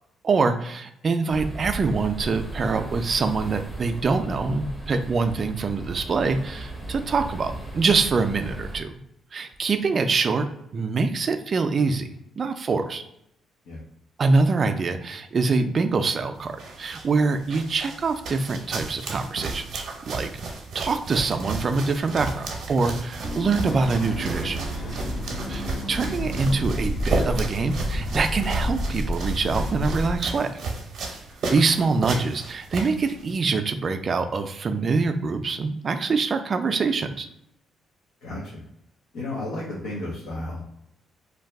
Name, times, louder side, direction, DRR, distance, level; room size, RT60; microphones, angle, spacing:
voice 1, 0.2-8.9 9.3-12.1 12.4-13.0 14.2-20.3 20.7-24.6 25.5-30.6 31.5-37.3, right 4 dB, 45° right, 7 dB, 0.3 m, -24 dB
sound 1, 1.3-8.8, right 1 dB, 10° left, 0.7 m, -36 dB
sound 2, 16.3-33.3, right 3 dB, 70° right, 0.7 m, -33 dB
sound 3, 23.2-30.2, equal, 45° left, 0.7 m, -30 dB
voice 2, 38.2-38.6 39.1-40.8, left 2 dB, 80° left, -5 dB, 0.7 m, -33 dB
2.6 x 2.3 x 3.3 m, 0.79 s
cardioid pair, 90°, 0 cm